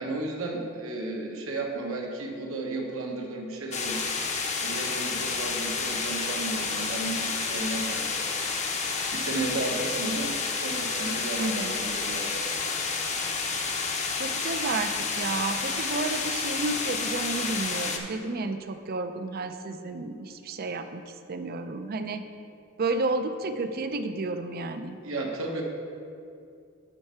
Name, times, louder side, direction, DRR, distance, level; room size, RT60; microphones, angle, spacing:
voice 1, 0.0-4.0 4.6-8.1 8.8-12.3 25.0-25.6, right 2 dB, 75° right, 1 dB, 1.1 m, -33 dB
sound 1, 3.7-18.0, left 4 dB, 35° left, 0.7 m, -30 dB
voice 2, 11.4-11.9 13.7-13.8 14.2-22.2 22.8-25.0, right 3 dB, 45° right, 9 dB, 0.5 m, -31 dB
8.8 x 4.5 x 5.6 m, 2.5 s
head